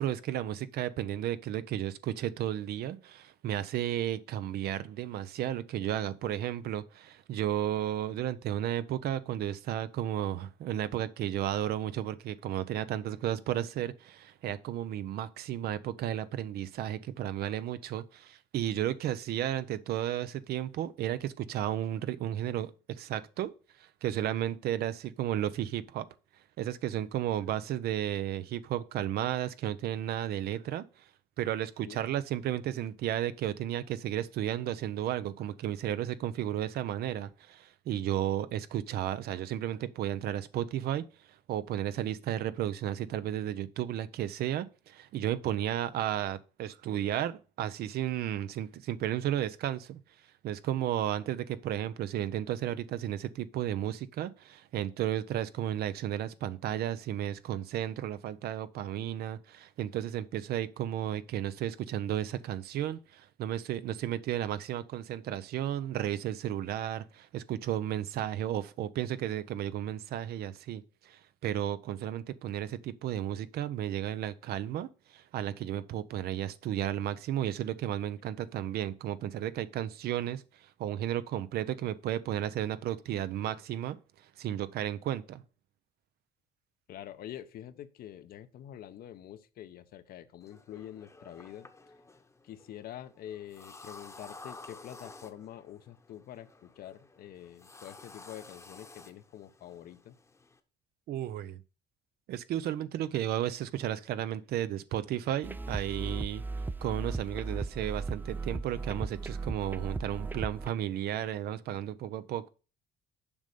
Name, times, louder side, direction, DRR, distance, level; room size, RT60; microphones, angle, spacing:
voice 1, 0.0-22.7 23.0-23.5 23.8-26.1 26.6-30.8 31.4-41.0 41.5-50.0 50.4-80.4 80.8-84.0 84.4-85.4 101.1-101.6 102.3-106.4 106.8-112.5, right 11 dB, 70° right, 0.7 m, -33 dB
voice 2, 86.9-91.7 92.4-100.2, left 11 dB, 65° left, 0.8 m, -46 dB
sound 1, 90.4-100.6, left 3 dB, 15° left, 1.0 m, -52 dB
sound 2, 105.4-110.7, right 3 dB, 10° right, 0.4 m, -36 dB
7.2 x 5.3 x 6.7 m
cardioid pair, 110°, 17 cm